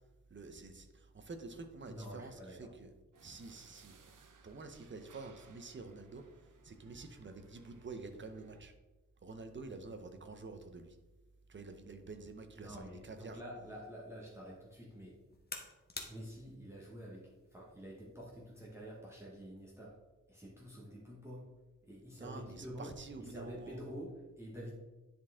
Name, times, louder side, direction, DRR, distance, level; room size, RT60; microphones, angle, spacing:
voice 1, 0.3-2.9 3.2-3.9 4.4-6.2 6.6-8.7 9.2-11.0 11.5-13.4 22.2-23.8, right 3 dB, 35° right, 7 dB, 0.7 m, -48 dB
voice 2, 1.9-2.7 12.5-15.2 16.1-19.9 20.3-21.5 21.8-22.9 23.2-24.7, equal, 10° right, -4 dB, 1.2 m, -48 dB
sound 1, 3.1-8.6, right 5 dB, 70° right, 0.7 m, -63 dB
sound 2, 13.8-19.0, left 3 dB, 30° left, 1.0 m, -53 dB
10.0 x 4.3 x 3.6 m, 1.1 s
wide cardioid pair, 135°, 32 cm